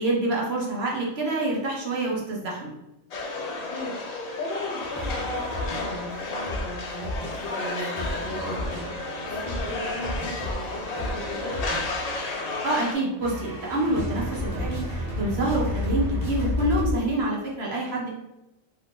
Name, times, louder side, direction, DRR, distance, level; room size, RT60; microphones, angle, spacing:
voice 1, 0.0-2.7 12.6-18.1, right 2 dB, 60° right, -3 dB, 0.9 m, -27 dB
sound 1, 3.1-12.9, left 3 dB, 75° left, 0.3 m, -33 dB
voice 2, 3.7-11.7, left 2 dB, 55° left, -1 dB, 0.8 m, -36 dB
sound 2, 4.8-16.9, left 1 dB, 25° left, 0.5 m, -32 dB
2.7 x 2.5 x 3.6 m, 0.94 s
omnidirectional pair, 1.3 m